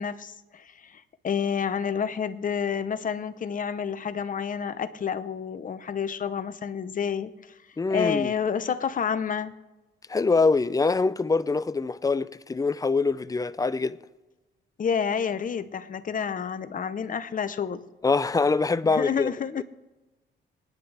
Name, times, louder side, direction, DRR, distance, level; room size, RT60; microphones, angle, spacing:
voice 1, 0.0-7.5 7.9-9.6 14.8-17.8 18.8-19.6, left 7 dB, 40° left, 0.9 m, -29 dB
voice 2, 7.8-8.3 10.1-14.0 18.0-19.3, left 4 dB, 15° left, 0.5 m, -24 dB
27.5 x 9.9 x 3.4 m
cardioid pair, 90°, 20 cm